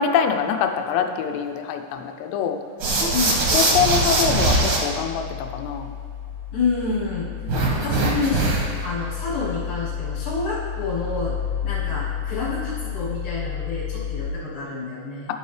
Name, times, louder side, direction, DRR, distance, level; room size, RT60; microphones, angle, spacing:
voice 1, 0.0-2.6 3.5-5.9 7.5-7.6, left 7 dB, 85° left, 6 dB, 2.8 m, -24 dB
sound 1, 2.8-4.8 7.5-8.8, right 2 dB, 65° right, 1.6 m, -21 dB
voice 2, 3.1-3.4 6.5-7.3 7.7-11.4 11.6-15.3, left 4 dB, 60° left, -9 dB, 2.7 m, -28 dB
sound 2, 4.2-14.3, left 9 dB, 80° right, 2.4 m, -31 dB
12.5 x 5.4 x 3.3 m, 2.2 s
omnidirectional pair, 4.9 m